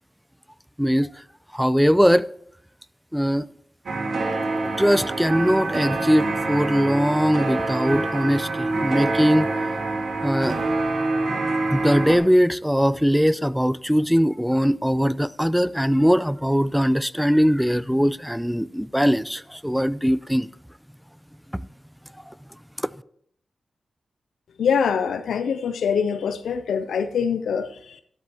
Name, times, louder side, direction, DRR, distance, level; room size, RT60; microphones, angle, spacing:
voice 1, 0.8-1.1 1.5-2.3 3.1-3.5 4.8-9.5 10.2-10.6 11.7-20.5 21.5-21.6, equal, ahead, 0.4 m, -20 dB
sound 1, 3.9-12.2, right 2 dB, 75° right, 1.8 m, -26 dB
voice 2, 24.6-28.0, left 6 dB, 90° left, 0.5 m, -24 dB
12.5 x 11.0 x 2.9 m
cardioid pair, 45°, 0 cm